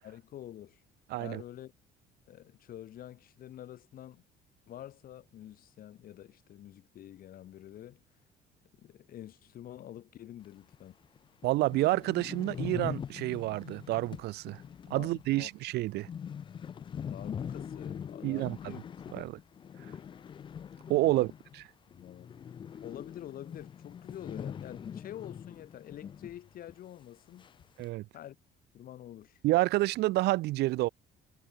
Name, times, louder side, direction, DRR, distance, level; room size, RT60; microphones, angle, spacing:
voice 1, 0.0-0.8 1.1-1.7 2.3-4.2 4.7-8.0 8.8-11.0 14.9-15.5 17.1-18.8 19.1-19.2 21.1-21.3 21.9-22.3 22.8-27.5 28.1-28.4 28.7-29.4, left 12 dB, 60° left, 1.5 m, -47 dB
voice 2, 1.1-1.4 11.4-14.6 14.9-16.1 18.2-18.7 19.1-19.4 20.9-21.3 27.8-28.0 29.4-30.9, right 18 dB, 75° right, 0.6 m, -29 dB
sound 1, 10.7-10.8 11.2-11.3 11.4-21.7 21.9-26.4 26.7-26.8 27.4-27.8, left 8 dB, 30° left, 0.4 m, -43 dB
cardioid pair, 110°, 17 cm